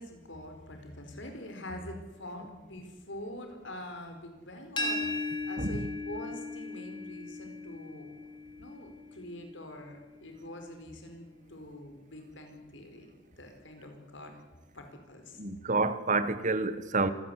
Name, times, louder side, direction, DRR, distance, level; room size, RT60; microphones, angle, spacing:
voice 1, 0.0-8.1 8.5-13.1 13.4-14.3 14.7-15.4, left 1 dB, 80° left, 4.8 m, -45 dB
sound 1, 4.8-10.5, left 2 dB, 25° left, 3.1 m, -38 dB
voice 2, 5.6-5.9 15.4-17.1, right 3 dB, 40° right, 1.5 m, -29 dB
26.0 x 17.0 x 8.4 m
head